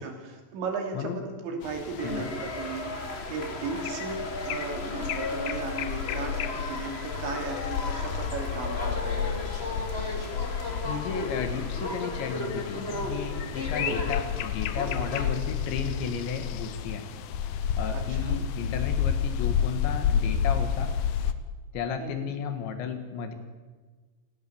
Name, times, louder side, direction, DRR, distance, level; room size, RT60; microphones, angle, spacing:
voice 1, 0.0-9.4 13.8-14.2 17.9-18.4 22.0-22.3, right 4 dB, 65° right, 3 dB, 5.1 m, -36 dB
sound 1, 1.6-21.3, left 8 dB, 85° left, 2.1 m, -31 dB
sound 2, 2.0-15.3, left 1 dB, 20° left, 1.8 m, -36 dB
voice 2, 10.8-17.1 17.8-20.9 21.7-23.3, left 7 dB, 70° left, 7 dB, 3.8 m, -34 dB
29.5 x 17.0 x 7.2 m, 1.4 s
omnidirectional pair, 5.8 m